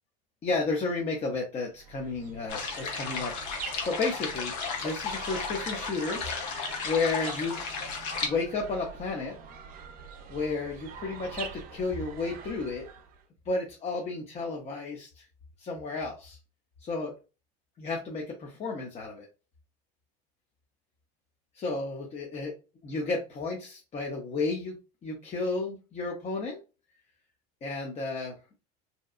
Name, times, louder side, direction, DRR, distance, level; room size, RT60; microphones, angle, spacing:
voice 1, 0.4-4.5 4.8-6.2 6.8-7.6 8.2-9.4 10.3-12.8 13.5-15.2 15.6-16.4 16.8-17.1 17.8-19.3 21.5-22.5 22.8-26.6 27.6-28.3, left 3 dB, 30° left, -1 dB, 0.6 m, -32 dB
sound 1, 1.7-13.2, right 6 dB, 45° right, 0.5 m, -44 dB
sound 2, 2.5-8.3, left 5 dB, 80° left, 0.9 m, -34 dB
2.7 x 2.2 x 2.4 m, 0.31 s
supercardioid pair, 105°, 21 cm